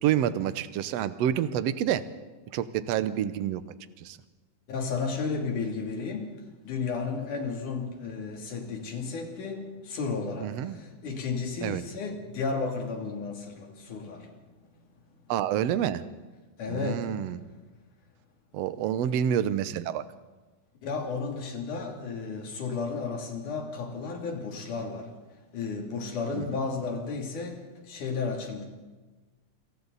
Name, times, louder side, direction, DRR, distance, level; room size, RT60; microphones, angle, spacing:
voice 1, 0.0-2.0 2.5-3.6 4.0-4.2 10.4-10.8 11.6-11.8 15.3-16.0 16.7-17.4 18.5-20.0 26.3-26.6, right 10 dB, 65° right, 1.8 m, -28 dB
voice 2, 4.7-6.3 6.7-9.6 9.9-10.5 11.0-14.2 16.6-17.1 20.8-25.0 25.5-27.6 27.9-28.6, left 4 dB, 85° left, 4.4 m, -33 dB
28.0 x 26.0 x 4.1 m
omnidirectional pair, 3.5 m